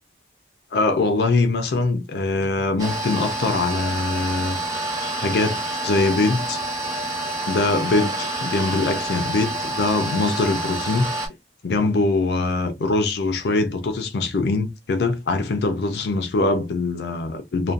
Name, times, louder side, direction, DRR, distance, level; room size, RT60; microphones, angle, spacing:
voice 1, 0.7-4.8 5.2-6.6 7.5-11.1 11.6-17.7, left 3 dB, 65° left, 0.4 m, -23 dB
sound 1, 2.8-11.3, right 2 dB, 20° right, 0.7 m, -28 dB
2.5 x 2.1 x 2.4 m
head